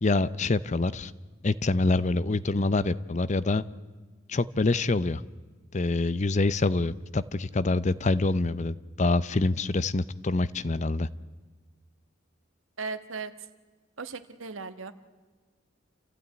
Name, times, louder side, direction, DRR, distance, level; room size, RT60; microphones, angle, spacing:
voice 1, 0.0-1.1 1.4-3.6 4.3-5.2 5.7-11.1, left 2 dB, 35° left, 16 dB, 0.7 m, -26 dB
voice 2, 12.8-13.3 14.0-14.9, right 4 dB, 85° right, 10 dB, 1.5 m, -36 dB
28.5 x 15.0 x 9.5 m, 1.4 s
head